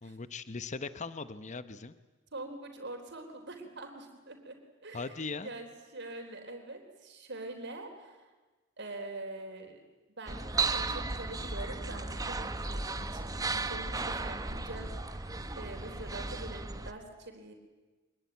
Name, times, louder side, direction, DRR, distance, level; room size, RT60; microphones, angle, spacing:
voice 1, 0.0-1.9 4.9-5.5, left 4 dB, 35° left, 13 dB, 0.9 m, -39 dB
voice 2, 2.3-4.6 4.8-5.7 5.9-8.3 8.8-9.8 10.2-10.4 10.7-17.5, right 2 dB, 55° right, 4 dB, 3.8 m, -44 dB
sound 1, 10.3-16.9, right 3 dB, 15° right, 1.0 m, -35 dB
25.0 x 21.5 x 9.3 m, 1.2 s
head